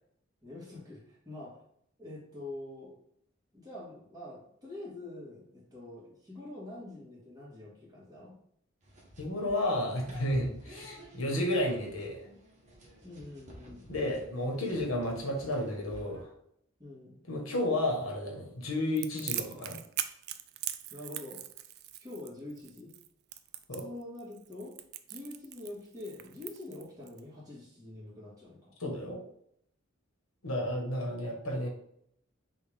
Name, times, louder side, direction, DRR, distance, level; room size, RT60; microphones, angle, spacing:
voice 1, 0.4-1.6 2.0-3.0 3.5-8.4 13.0-13.9 16.8-17.2 20.9-21.4 22.0-22.9 23.8-24.8 25.1-28.7, left 2 dB, 20° right, -6 dB, 1.6 m, -45 dB
sound 1, 8.8-16.2, equal, 35° right, 1.2 m, -51 dB
voice 2, 9.2-12.2 13.9-16.3 17.3-19.8 23.7-23.9 28.8-29.2 30.4-31.7, left 1 dB, 90° left, 1 dB, 1.2 m, -32 dB
Crackle, 19.0-27.2, right 12 dB, 50° right, 0.3 m, -40 dB
6.0 x 2.5 x 3.4 m, 0.71 s
head